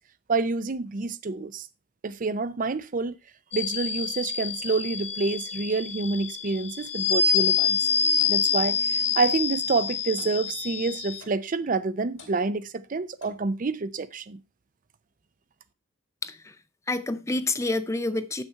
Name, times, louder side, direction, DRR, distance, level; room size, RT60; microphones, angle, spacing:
voice 1, 0.3-1.7 2.0-3.2 3.5-7.9 8.3-14.4, right 3 dB, 40° right, 0.5 m, -28 dB
sound 1, 3.5-11.2, left 6 dB, 35° left, 1.0 m, -27 dB
Clock, 8.2-8.4 9.2-9.4 10.2-10.4 11.2-11.4 12.2-12.4 13.2-13.5, left 3 dB, 65° left, 2.6 m, -49 dB
voice 2, 16.2-16.6 16.9-18.4, left 2 dB, 15° left, 0.4 m, -28 dB
7.7 x 6.4 x 4.5 m
head